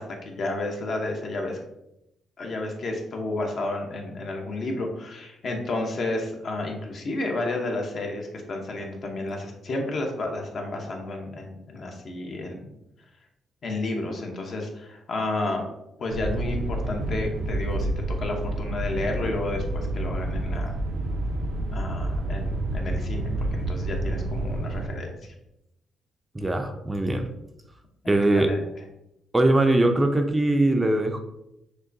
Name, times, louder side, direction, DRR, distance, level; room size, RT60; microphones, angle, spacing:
voice 1, 0.0-1.6 2.4-12.7 13.6-15.6 16.0-17.9 18.2-20.7 21.7-25.1 28.0-28.6, left 2 dB, 55° left, 2 dB, 0.8 m, -31 dB
sound 1, 16.1-24.9, right 1 dB, 70° right, 0.5 m, -29 dB
voice 2, 26.3-27.3 28.1-28.5 29.3-31.2, right 1 dB, 15° right, 5 dB, 0.4 m, -21 dB
6.2 x 2.2 x 2.7 m, 0.85 s
cardioid pair, 90°, 0 cm